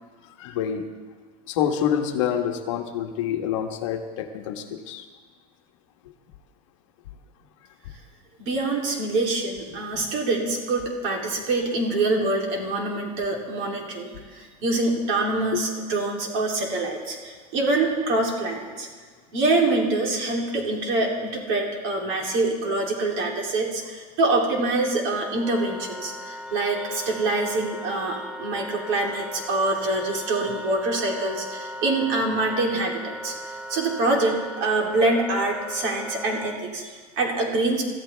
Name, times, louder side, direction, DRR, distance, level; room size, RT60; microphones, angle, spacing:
voice 1, 0.2-0.9 1.5-5.0 9.9-10.0 15.5-15.6, left 9 dB, 55° left, 5 dB, 1.4 m, -27 dB
voice 2, 8.4-18.9 19.3-37.8, right 2 dB, 40° right, 0 dB, 3.0 m, -25 dB
Wind instrument woodwind instrument, 25.3-36.6, left 1 dB, 5° right, 0.7 m, -38 dB
25.0 x 14.5 x 3.4 m, 1.5 s
supercardioid pair, 175°, 19 cm